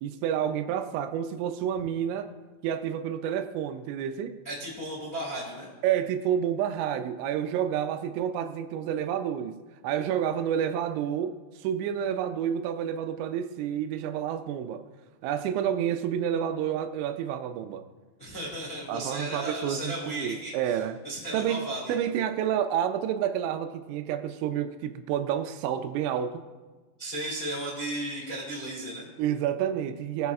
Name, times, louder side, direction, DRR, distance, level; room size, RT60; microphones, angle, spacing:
voice 1, 0.0-2.3 2.6-4.4 5.8-14.9 15.2-17.8 18.9-21.0 21.3-26.4 29.2-30.3, right 9 dB, 85° right, 9 dB, 2.8 m, -29 dB
voice 2, 4.4-5.7 18.2-22.0 27.0-29.0, right 1 dB, 25° left, -5 dB, 1.2 m, -35 dB
20.5 x 7.6 x 2.4 m, 1.3 s
omnidirectional pair, 5.3 m